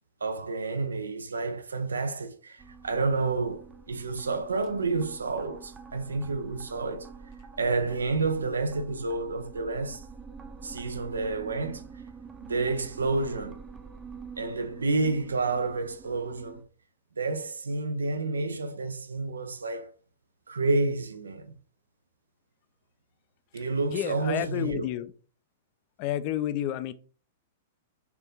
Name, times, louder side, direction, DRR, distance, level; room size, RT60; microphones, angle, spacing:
voice 1, 0.2-7.1 7.6-10.0 10.6-11.8 12.4-13.6 14.4-16.6 17.2-19.9 20.5-21.5 23.5-24.9, right 3 dB, 90° right, 0.5 m, -29 dB
sound 1, 2.6-16.6, right 5 dB, 15° right, 0.6 m, -47 dB
voice 2, 23.9-25.1 26.0-26.9, left 12 dB, 45° left, 0.4 m, -30 dB
4.5 x 2.6 x 3.6 m
hypercardioid pair, 115°, 0 cm